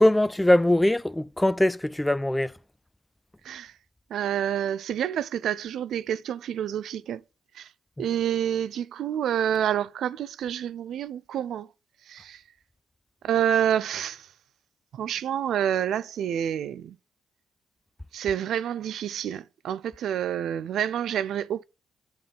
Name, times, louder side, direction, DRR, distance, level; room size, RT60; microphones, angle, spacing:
voice 1, 0.0-2.5, left 1 dB, 10° left, 0.3 m, -21 dB
voice 2, 4.1-7.2 7.5-7.7 8.0-11.7 12.1-12.4 13.2-14.3 14.9-17.0 18.1-21.6, right 9 dB, 80° right, 0.4 m, -28 dB
8.8 x 3.6 x 6.9 m
cardioid pair, 75°, 0 cm